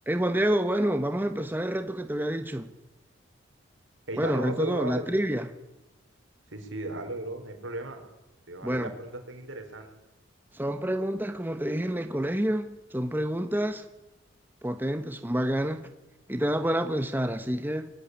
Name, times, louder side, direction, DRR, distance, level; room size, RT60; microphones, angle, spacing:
voice 1, 0.1-2.7 4.2-5.5 8.6-8.9 10.5-13.8 14.6-15.9 16.3-17.9, right 1 dB, 10° right, 8 dB, 1.2 m, -28 dB
voice 2, 4.1-5.1 6.5-8.0 8.5-9.9, right 2 dB, 75° right, 6 dB, 5.3 m, -35 dB
23.0 x 18.5 x 10.0 m, 1.0 s
head